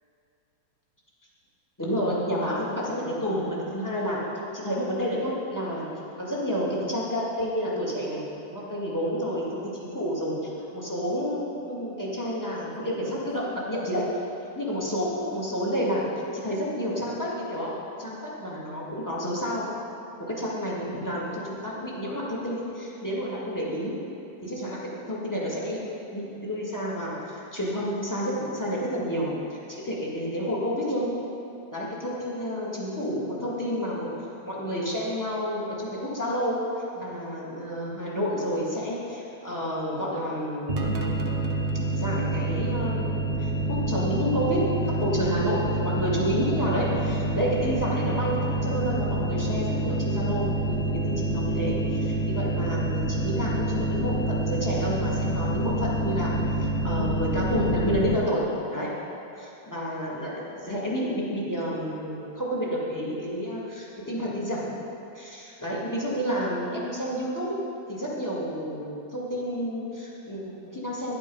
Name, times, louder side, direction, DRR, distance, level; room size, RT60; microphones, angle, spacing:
voice 1, 1.8-4.2 4.5-5.9 6.2-10.3 10.7-14.0 14.6-16.0 16.3-17.7 18.0-19.7 20.2-23.9 24.4-24.8 25.1-25.8 26.1-31.1 31.7-34.1 34.4-36.6 37.0-40.9 41.9-43.1 43.4-54.2 54.5-58.4 58.7-58.9 59.3-64.7 65.1-67.5 67.9-71.2, equal, 10° left, -6 dB, 1.8 m, -30 dB
sound 1, 40.7-58.1, right 1 dB, 50° right, 0.7 m, -27 dB
10.5 x 8.2 x 5.4 m, 2.8 s
omnidirectional pair, 2.2 m